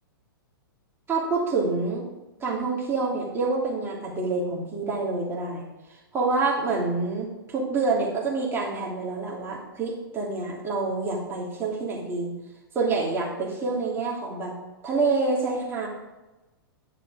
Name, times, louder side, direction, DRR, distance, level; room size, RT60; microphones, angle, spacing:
voice 1, 1.1-2.0 2.4-12.3 12.7-14.6 14.8-15.9, right 3 dB, 20° right, -3 dB, 3.0 m, -27 dB
11.0 x 7.6 x 5.0 m, 1.1 s
hypercardioid pair, 125°, 12 cm